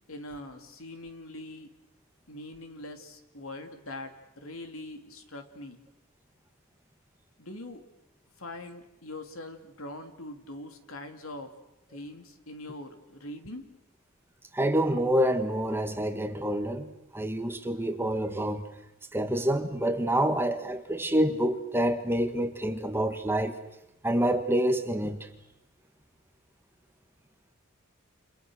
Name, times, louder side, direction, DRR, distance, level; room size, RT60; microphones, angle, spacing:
voice 1, 0.1-1.7 2.3-5.8 7.4-7.8 8.4-11.5 11.9-13.7, left 1 dB, 70° left, 3.0 m, -42 dB
voice 2, 14.5-16.9 17.1-18.6 19.1-23.6 24.0-25.3, right 1 dB, 10° right, 1.5 m, -27 dB
29.5 x 28.5 x 6.5 m
head